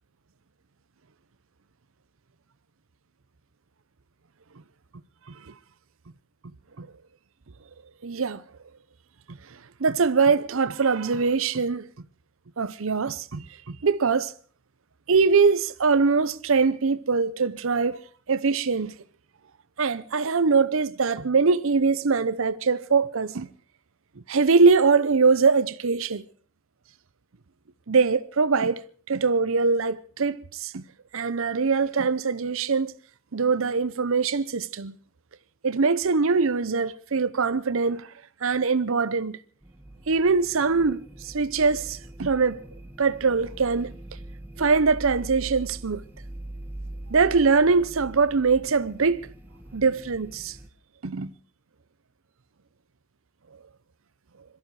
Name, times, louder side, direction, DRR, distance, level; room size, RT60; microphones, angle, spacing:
voice 1, 8.0-8.4 9.8-11.9 12.6-14.3 15.1-18.0 18.3-18.9 19.8-23.5 24.3-26.2 27.9-30.8 31.1-32.9 33.3-34.9 35.6-38.1 38.4-39.4 40.1-42.6 43.0-43.9 44.6-46.0 47.1-49.3 49.7-50.6 51.0-51.3, right 4 dB, 65° right, 0.7 m, -22 dB
sound 1, 39.6-50.7, right 1 dB, 10° right, 1.5 m, -42 dB
22.5 x 13.5 x 4.8 m
head